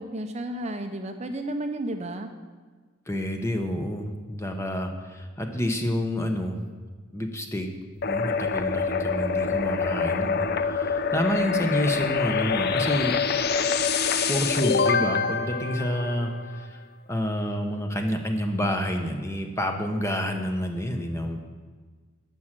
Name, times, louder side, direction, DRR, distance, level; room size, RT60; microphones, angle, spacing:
voice 1, 0.0-2.3, right 1 dB, 35° right, 6 dB, 0.7 m, -32 dB
voice 2, 3.1-6.6 7.1-7.7 8.0-13.2 14.3-16.8 17.1-21.4, equal, 15° left, 4 dB, 0.9 m, -28 dB
sound 1, 8.0-16.7, left 5 dB, 50° left, 0.5 m, -26 dB
11.0 x 6.3 x 7.5 m, 1.5 s
head